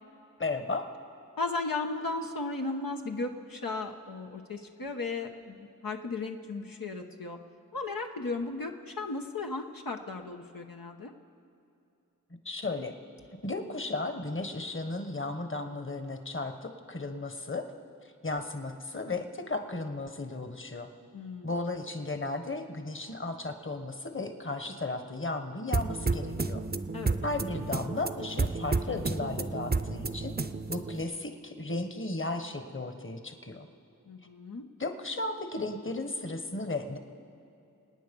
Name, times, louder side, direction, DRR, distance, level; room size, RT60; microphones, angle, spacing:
voice 1, 0.4-0.9 12.4-12.9 13.4-17.6 18.2-20.9 21.4-26.6 27.2-30.3 30.7-33.7 34.8-37.0, left 2 dB, 35° left, 7 dB, 1.3 m, -35 dB
voice 2, 1.4-7.4 7.7-11.1 21.1-21.5 26.9-27.2 34.1-34.7, left 3 dB, 80° left, 3 dB, 1.0 m, -35 dB
sound 1, 25.7-31.0, right 3 dB, 30° right, 0.6 m, -31 dB
27.0 x 9.3 x 5.4 m, 2.7 s
wide cardioid pair, 45°, 34 cm